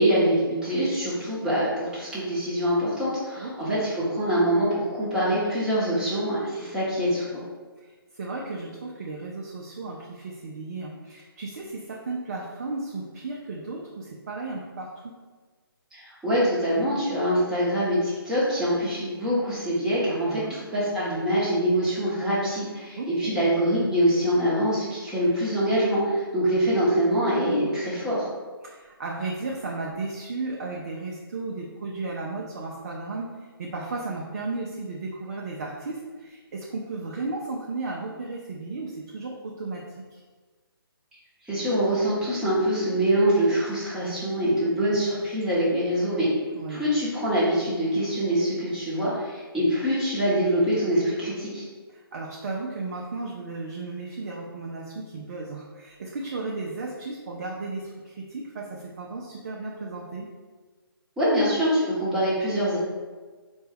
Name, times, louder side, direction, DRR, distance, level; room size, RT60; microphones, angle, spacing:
voice 1, 0.0-7.4 15.9-28.3 41.5-46.3 46.7-51.6 61.2-62.8, equal, 5° right, -10 dB, 0.9 m, -24 dB
voice 2, 3.4-3.8 7.8-15.1 20.2-20.6 23.0-23.4 28.6-40.2 44.4-44.7 46.5-46.8 51.9-60.3, right 3 dB, 45° right, -2 dB, 0.5 m, -34 dB
4.2 x 2.3 x 3.4 m, 1.4 s
figure-of-eight pair, 150°, 13 cm